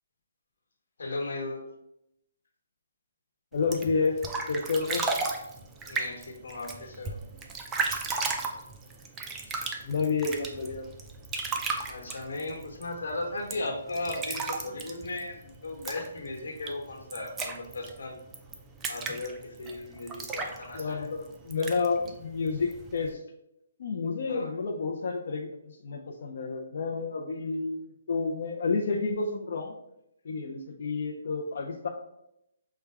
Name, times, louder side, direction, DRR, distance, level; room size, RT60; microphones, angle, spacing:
voice 1, 1.0-1.6 5.8-7.2 9.5-9.6 11.9-18.1 18.9-21.1 24.3-24.5, left 2 dB, 80° left, 2 dB, 1.2 m, -36 dB
voice 2, 3.5-4.2 4.5-5.1 9.8-10.9 20.7-23.2 23.8-29.7 30.2-31.9, left 4 dB, 55° left, -1 dB, 0.5 m, -30 dB
sound 1, 3.5-23.1, right 4 dB, 10° right, 0.3 m, -36 dB
5.8 x 2.2 x 3.4 m, 0.82 s
hypercardioid pair, 170°, 0 cm